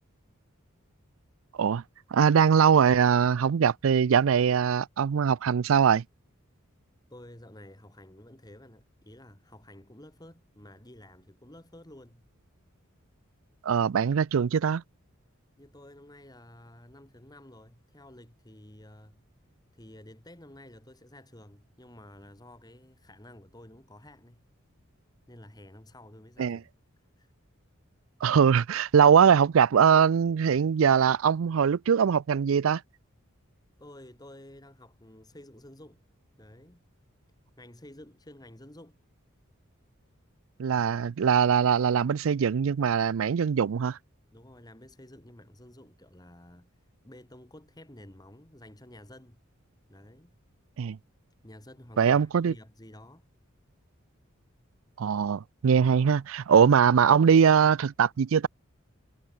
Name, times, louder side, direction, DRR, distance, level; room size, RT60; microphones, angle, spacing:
voice 1, 2.1-6.0 13.6-14.8 26.4-26.6 28.2-32.8 40.6-44.0 50.8-51.0 52.0-52.5 55.0-58.5, right 7 dB, 75° right, 0.4 m, -22 dB
voice 2, 7.1-12.2 15.6-19.2 19.7-24.5 25.3-26.7 27.2-27.3 33.8-36.0 36.4-36.8 37.6-39.0 40.7-41.0 44.3-46.7 47.0-49.4 49.9-50.4 51.4-53.3 55.7-55.9, left 1 dB, 20° left, 2.8 m, -51 dB
head